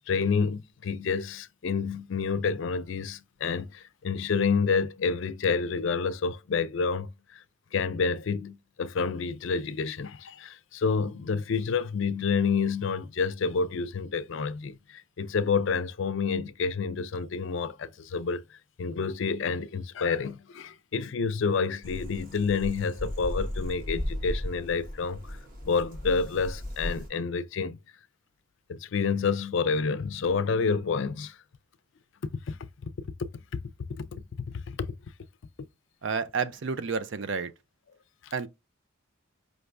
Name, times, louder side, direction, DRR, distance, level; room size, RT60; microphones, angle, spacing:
voice 1, 0.1-7.4 7.7-25.4 25.6-27.8 28.7-31.4 32.5-32.9 33.5-33.6 34.0-34.9 38.2-38.3, left 5 dB, 65° left, 0.4 m, -29 dB
sound 1, 21.8-27.1, left 1 dB, 40° right, 1.5 m, -36 dB
voice 2, 36.0-37.5 38.3-38.5, right 5 dB, 60° right, 0.5 m, -30 dB
5.2 x 3.3 x 2.5 m
head